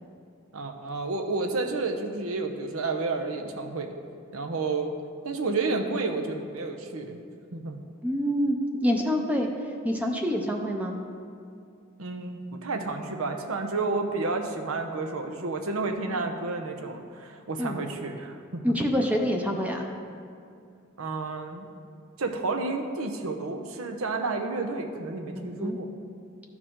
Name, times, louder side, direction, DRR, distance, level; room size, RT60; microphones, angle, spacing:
voice 1, 0.5-3.9 4.3-4.9 5.2-7.2 7.5-7.8 12.0-18.8 21.0-21.7 22.2-25.9, right 3 dB, 85° right, 5 dB, 0.8 m, -31 dB
voice 2, 8.0-11.0 17.6-17.8 18.6-19.9 25.3-25.8, equal, 5° right, 2 dB, 0.5 m, -27 dB
13.5 x 4.9 x 3.7 m, 2.4 s
head